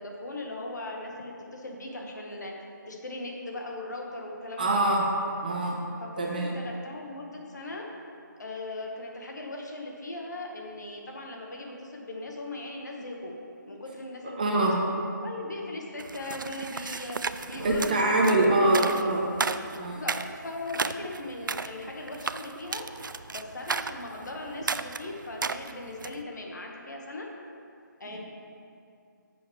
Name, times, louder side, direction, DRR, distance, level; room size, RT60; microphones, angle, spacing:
voice 1, 0.0-2.5 2.9-4.8 6.0-7.9 8.4-13.3 13.7-14.4 15.2-17.2 17.4-18.1 18.5-19.1 19.8-22.8 23.3-27.3 28.0-28.2, left 2 dB, 60° left, 0 dB, 1.4 m, -39 dB
voice 2, 4.6-5.0 5.4-5.8 6.2-6.5 14.2-14.8 17.6-19.2 19.7-20.1 28.1-28.2, right 2 dB, 25° right, -1 dB, 0.8 m, -24 dB
sound 1, 16.0-26.2, right 5 dB, 80° right, 0.4 m, -34 dB
10.5 x 7.0 x 3.2 m, 2.5 s
figure-of-eight pair, 175°, 11 cm